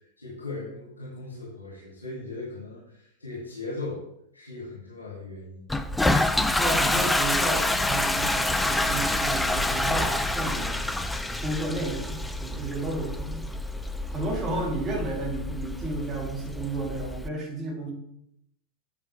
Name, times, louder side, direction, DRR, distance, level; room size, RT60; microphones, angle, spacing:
voice 1, 0.0-4.0 4.3-5.7 14.5-14.6, left 2 dB, 80° left, -6 dB, 2.3 m, -38 dB
Toilet flush, 5.7-17.3, left 1 dB, 5° left, 0.4 m, -27 dB
voice 2, 6.6-10.9 11.4-13.5 14.1-17.9, right 2 dB, 20° right, -3 dB, 3.1 m, -32 dB
8.6 x 7.0 x 3.4 m, 0.75 s
figure-of-eight pair, 90°, 0 cm